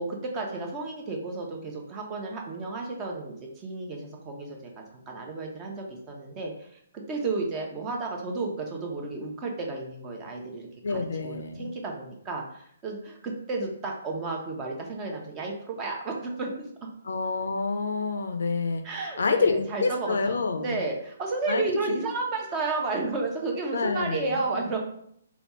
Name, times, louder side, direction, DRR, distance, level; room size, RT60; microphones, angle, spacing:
voice 1, 0.0-4.6 5.1-6.7 7.1-16.9 18.8-24.8, right 3 dB, 25° right, 1 dB, 0.8 m, -32 dB
voice 2, 10.8-11.7 17.0-20.8 21.5-22.1 23.7-24.4, left 4 dB, 70° left, 6 dB, 0.5 m, -28 dB
3.4 x 2.3 x 4.2 m, 0.69 s
hypercardioid pair, 140°, 0 cm